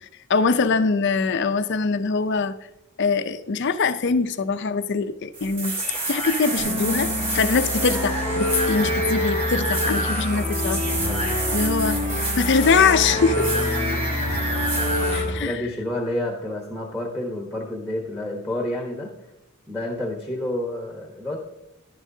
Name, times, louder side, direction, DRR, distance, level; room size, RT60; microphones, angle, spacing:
voice 1, 0.0-2.5 3.0-5.8 6.1-10.8 11.5-13.7 15.1-15.7, left 4 dB, 55° left, 11 dB, 0.5 m, -23 dB
sound 1, 5.3-15.2, right 2 dB, 25° right, 2.0 m, -28 dB
sound 2, 6.6-15.3, left 1 dB, 85° right, 2.9 m, -26 dB
voice 2, 11.0-11.5 14.3-14.5 15.2-19.1 19.7-21.4, left 1 dB, ahead, 0 dB, 1.1 m, -30 dB
11.0 x 11.0 x 2.7 m, 0.92 s
head